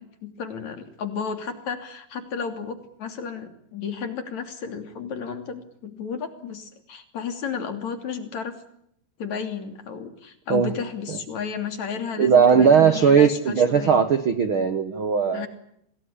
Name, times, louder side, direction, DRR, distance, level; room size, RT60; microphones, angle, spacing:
voice 1, 0.0-8.6 9.2-14.0 15.3-15.5, left 6 dB, 50° left, 7 dB, 4.0 m, -33 dB
voice 2, 12.2-15.5, right 6 dB, 60° right, 10 dB, 1.4 m, -18 dB
27.5 x 19.5 x 9.9 m, 0.73 s
omnidirectional pair, 4.5 m